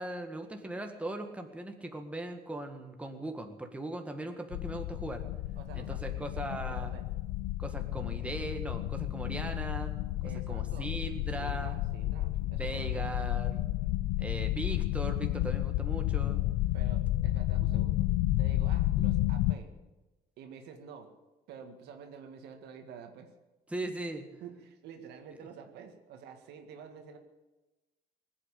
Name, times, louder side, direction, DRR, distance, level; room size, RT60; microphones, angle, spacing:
voice 1, 0.0-5.2 5.7-6.9 7.6-9.9 10.5-11.8 12.4-13.6 14.2-16.4 23.7-24.3, right 2 dB, 5° right, 4 dB, 1.8 m, -39 dB
sound 1, 4.5-19.5, left 16 dB, 85° left, 0.6 m, -31 dB
voice 2, 5.6-6.2 6.7-7.0 10.2-10.9 11.4-13.1 16.7-19.7 20.4-21.1 21.5-23.3 24.4-27.2, right 7 dB, 80° right, 5 dB, 1.9 m, -49 dB
19.5 x 8.5 x 8.4 m, 1.1 s
cardioid pair, 110°, 17 cm